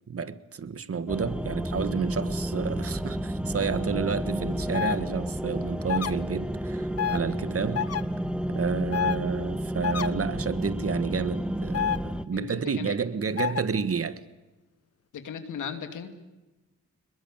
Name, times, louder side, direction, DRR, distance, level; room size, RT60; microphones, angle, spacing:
voice 1, 0.1-7.9 8.5-14.2, right 5 dB, 50° right, 1.6 m, -30 dB
sound 1, 1.1-12.3, equal, 5° right, 1.3 m, -31 dB
sound 2, 4.7-5.0 5.9-6.1 7.0-7.2 7.7-8.0 8.9-9.2 9.8-10.1 11.7-12.0 13.4-13.6, left 9 dB, 55° left, 1.1 m, -27 dB
voice 2, 12.3-12.9 15.1-16.1, left 7 dB, 90° left, 2.6 m, -37 dB
22.0 x 21.5 x 8.9 m
cardioid pair, 70°, 30 cm